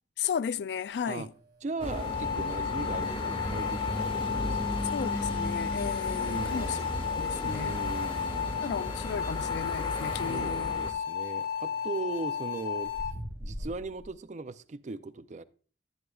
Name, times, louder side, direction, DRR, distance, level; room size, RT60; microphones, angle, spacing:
voice 1, 0.2-1.3 4.8-6.8 7.2-7.7 8.6-10.8, left 7 dB, 75° left, 0.3 m, -34 dB
sound 1, 0.9-14.1, right 1 dB, 80° right, 1.6 m, -49 dB
voice 2, 1.6-4.9 6.2-6.9 7.4-8.7 10.2-12.9 13.4-15.4, right 3 dB, 45° right, 0.5 m, -39 dB
sound 2, 1.8-10.9, left 1 dB, 30° left, 1.1 m, -35 dB
sound 3, 1.9-13.1, left 7 dB, 55° left, 0.9 m, -34 dB
10.5 x 9.8 x 2.4 m
head